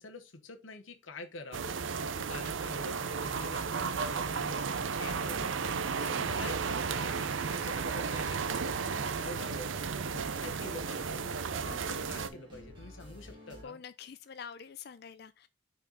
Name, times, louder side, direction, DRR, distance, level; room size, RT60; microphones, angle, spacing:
voice 1, 0.0-1.8 2.1-9.7 10.1-11.4 11.8-13.8, left 3 dB, 85° left, 1.1 m, -47 dB
sound 1, 1.5-12.3, right 5 dB, 80° right, 0.5 m, -34 dB
sound 2, 3.4-13.6, equal, 25° right, 2.2 m, -50 dB
voice 2, 11.6-12.0 13.6-15.5, left 7 dB, 55° left, 0.4 m, -47 dB
5.6 x 4.5 x 3.9 m
head